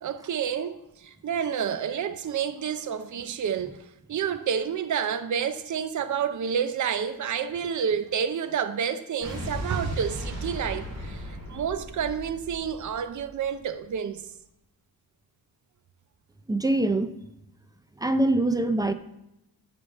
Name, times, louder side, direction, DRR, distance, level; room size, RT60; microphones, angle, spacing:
voice 1, 0.0-3.8 4.1-14.3, right 7 dB, 55° right, 0.6 m, -29 dB
Explosion, 9.2-13.5, equal, 75° right, 2.9 m, -36 dB
voice 2, 16.5-17.1 18.0-18.9, right 2 dB, 10° right, 0.4 m, -23 dB
9.8 x 5.2 x 4.1 m
wide cardioid pair, 115°, 37 cm